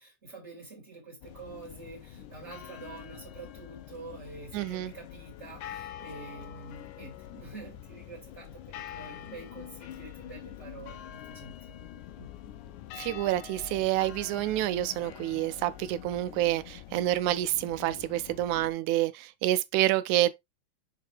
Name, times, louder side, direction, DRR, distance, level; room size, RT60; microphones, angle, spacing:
voice 1, 0.0-11.9 12.2-12.3, right 3 dB, 25° right, 2.5 m, -47 dB
sound 1, 1.2-18.7, left 11 dB, 80° left, 2.2 m, -45 dB
voice 2, 4.5-4.9 13.0-20.3, right 14 dB, 80° right, 1.9 m, -28 dB
6.6 x 4.7 x 3.3 m
omnidirectional pair, 3.6 m